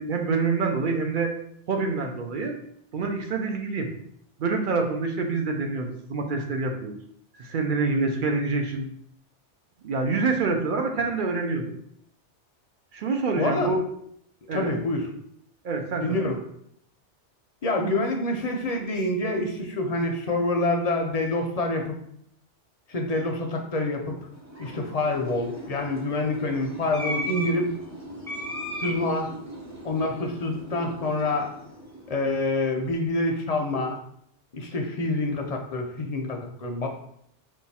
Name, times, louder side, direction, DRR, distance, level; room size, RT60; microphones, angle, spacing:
voice 1, 0.0-1.3 1.7-2.5 2.9-3.9 4.4-7.0 7.4-8.9 9.8-11.7 12.9-13.8 14.5-14.7 15.6-16.2, right 4 dB, 55° right, 3 dB, 0.6 m, -26 dB
voice 2, 13.4-13.7 14.5-15.1 16.0-16.4 17.6-22.0 22.9-24.2 24.6-27.7 28.8-29.3 29.8-31.5 32.1-34.0 34.5-36.9, left 2 dB, 45° left, 2 dB, 0.5 m, -27 dB
sound 1, 24.2-32.7, equal, 15° right, 0.7 m, -37 dB
4.6 x 2.3 x 4.1 m, 0.71 s
omnidirectional pair, 1.2 m